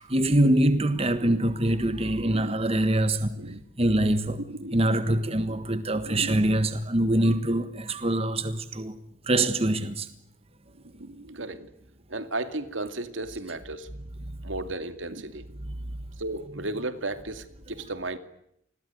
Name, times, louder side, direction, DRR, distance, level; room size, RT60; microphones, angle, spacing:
voice 1, 0.0-4.4 4.7-9.0 9.2-10.1 14.2-14.4 15.6-16.1, right 1 dB, 30° right, 1.5 m, -24 dB
voice 2, 2.2-2.5 3.4-3.6 4.5-4.8 5.5-5.6 6.0-6.4 10.8-11.7 12.1-13.9 14.4-15.4 16.2-18.2, right 2 dB, 75° right, 2.4 m, -34 dB
29.0 x 21.0 x 9.4 m
head